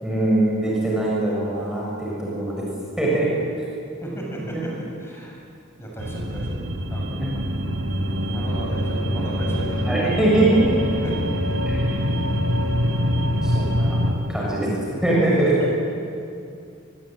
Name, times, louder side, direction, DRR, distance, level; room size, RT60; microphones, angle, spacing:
voice 1, 0.0-2.6 3.0-3.3 7.2-7.3 9.9-10.7 11.7-12.0 13.4-14.0 14.3-15.5, right 1 dB, 5° right, -5 dB, 6.6 m, -22 dB
voice 2, 4.0-5.4 5.8-7.3 8.2-10.1 11.0-11.2 15.4-15.7, right 1 dB, 15° left, -2 dB, 7.3 m, -34 dB
sound 1, 6.0-14.1, equal, 80° right, 4.4 m, -24 dB
29.5 x 22.0 x 9.1 m, 2.5 s
head